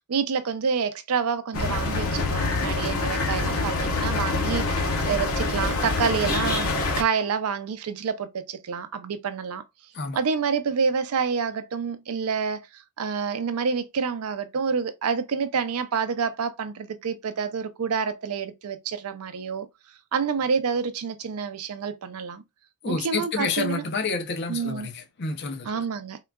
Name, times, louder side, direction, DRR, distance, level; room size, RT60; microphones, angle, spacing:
voice 1, 0.1-9.6 10.1-12.7 13.0-19.7 20.1-22.4 22.8-23.8 24.5-24.9 25.7-26.2, right 6 dB, 80° right, 0.5 m, -28 dB
sound 1, 1.5-7.0, left 3 dB, 75° left, 0.8 m, -25 dB
voice 2, 22.8-25.8, left 4 dB, 50° left, 0.5 m, -29 dB
3.7 x 2.3 x 2.2 m
head